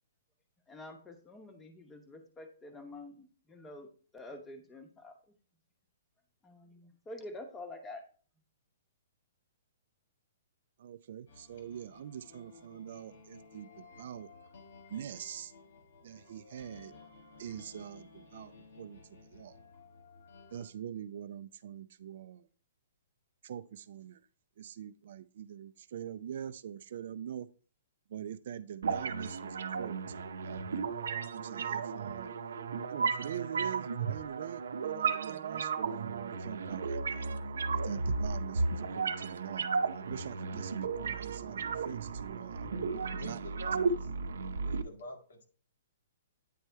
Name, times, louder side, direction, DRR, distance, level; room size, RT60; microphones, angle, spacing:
voice 1, 0.7-3.9 4.1-5.2 6.4-8.0, left 2 dB, 10° left, 0.9 m, -47 dB
voice 2, 10.8-14.3 14.9-15.5 16.0-16.9 17.4-19.6 20.5-22.5 23.4-24.3 24.6-27.5 28.1-30.6 31.3-32.3 32.9-37.3 37.8-42.7 43.1-43.4, right 9 dB, 55° right, 0.4 m, -44 dB
sound 1, 11.3-20.7, left 4 dB, 60° left, 1.7 m, -56 dB
sound 2, 28.8-44.8, right 5 dB, 85° right, 0.7 m, -34 dB
voice 3, 43.1-44.1 44.6-45.4, left 2 dB, 85° left, 2.1 m, -48 dB
9.3 x 3.3 x 4.4 m
hypercardioid pair, 165°, 0 cm